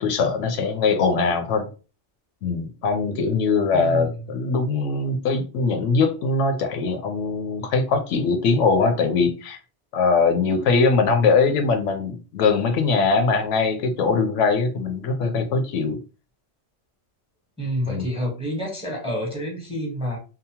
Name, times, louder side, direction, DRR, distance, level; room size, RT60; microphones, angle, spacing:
voice 1, 0.0-1.7 2.4-9.6 9.9-16.0 17.9-18.1, left 4 dB, 80° left, 0.9 m, -21 dB
voice 2, 3.7-4.1 17.6-20.2, equal, 5° right, 0.6 m, -28 dB
2.8 x 2.0 x 2.8 m
omnidirectional pair, 1.3 m